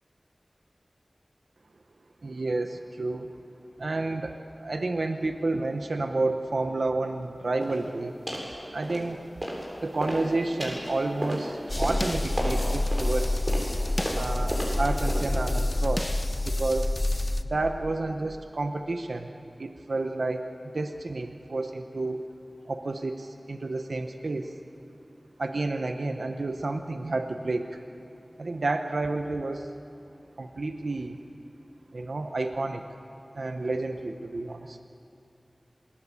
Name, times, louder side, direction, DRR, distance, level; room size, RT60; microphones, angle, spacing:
voice 1, 2.2-3.3 3.8-8.1 8.7-9.2 9.8-13.4 14.1-16.1 16.4-16.9 17.5-19.3 19.6-22.2 22.7-24.5 25.4-27.8 28.4-29.7 30.4-31.2 31.9-32.9 33.3-34.8, right 2 dB, 90° right, 6 dB, 0.9 m, -30 dB
sound 1, 7.6-7.8 8.3-8.5 8.8-9.7 9.9-15.5, equal, 25° right, 7.7 m, -33 dB
sound 2, 11.7-17.4, left 1 dB, 40° left, 1.0 m, -27 dB
27.0 x 21.0 x 8.4 m, 2.6 s
wide cardioid pair, 45°, 0 cm